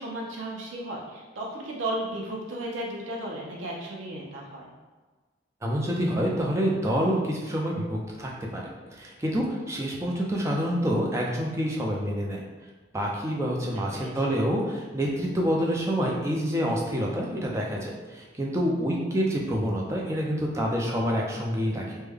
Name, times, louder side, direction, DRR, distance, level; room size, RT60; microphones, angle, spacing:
voice 1, 0.0-4.7 9.5-9.7 13.9-14.4, right 1 dB, 85° right, -2 dB, 0.6 m, -35 dB
voice 2, 5.6-8.6 8.9-12.4 12.9-22.0, equal, 15° right, -2 dB, 0.4 m, -27 dB
3.3 x 2.1 x 3.4 m, 1.3 s
head